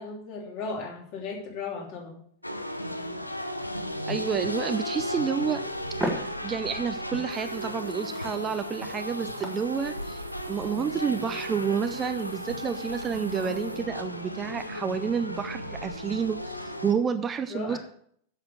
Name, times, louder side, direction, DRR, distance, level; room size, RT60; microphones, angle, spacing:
voice 1, 0.0-2.2 17.5-17.8, left 4 dB, 45° left, -1 dB, 3.1 m, -36 dB
sound 1, 2.4-16.9, left 1 dB, 85° left, 0.7 m, -35 dB
voice 2, 4.1-5.6 6.1-17.8, right 7 dB, 20° right, 10 dB, 0.5 m, -30 dB
sound 2, 5.2-14.7, right 1 dB, 5° right, 1.5 m, -42 dB
sound 3, 7.3-13.8, right 3 dB, 75° right, 1.1 m, -51 dB
8.1 x 6.9 x 6.3 m, 0.65 s
figure-of-eight pair, 90°, 0 cm